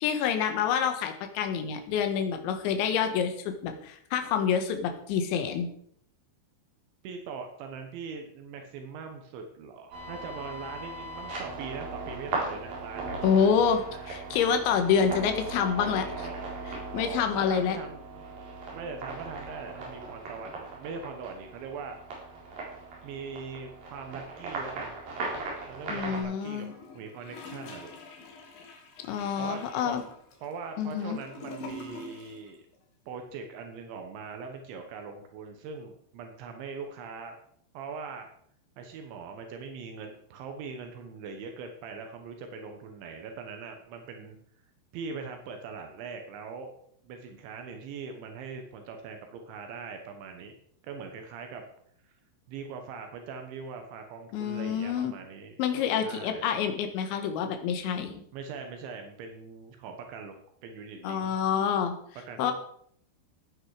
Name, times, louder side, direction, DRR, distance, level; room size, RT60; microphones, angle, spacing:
voice 1, 0.0-5.7 13.2-13.8 14.1-16.3 16.9-17.8 25.9-26.7 29.0-30.0 30.8-31.2 54.3-55.1 55.6-58.2 61.0-61.9 62.4-62.5, left 7 dB, 75° left, 6 dB, 3.6 m, -27 dB
voice 2, 7.0-14.0 16.1-18.3 18.7-22.0 23.0-25.0 25.7-26.7 26.9-27.9 29.4-29.9 30.4-32.6 33.1-37.4 37.8-38.3 38.8-44.4 44.9-46.7 47.0-50.5 50.8-51.6 52.0-52.1 52.5-55.6 56.0-56.5 58.3-60.4 60.6-61.4 62.3-62.5, right 5 dB, 75° right, 5 dB, 3.5 m, -41 dB
sound 1, 9.9-26.2, right 3 dB, 50° right, 5.7 m, -38 dB
Gurgling / Toilet flush, 26.4-32.5 32.7-32.8, left 2 dB, 55° left, 3.5 m, -45 dB
15.5 x 9.4 x 4.9 m, 0.66 s
omnidirectional pair, 5.5 m